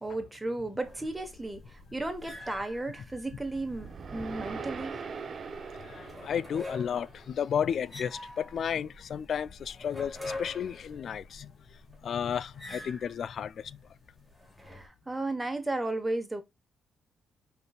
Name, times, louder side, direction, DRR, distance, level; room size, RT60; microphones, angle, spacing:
voice 1, 0.0-5.0 14.6-16.4, right 2 dB, 15° right, 1.3 m, -34 dB
sound 1, 0.8-14.9, left 2 dB, 10° left, 2.0 m, -46 dB
sound 2, 3.1-7.5, right 5 dB, 45° right, 0.7 m, -42 dB
voice 2, 5.8-11.5 12.0-13.8, left 8 dB, 55° left, 0.3 m, -33 dB
5.4 x 3.9 x 2.4 m
cardioid pair, 90°, 0 cm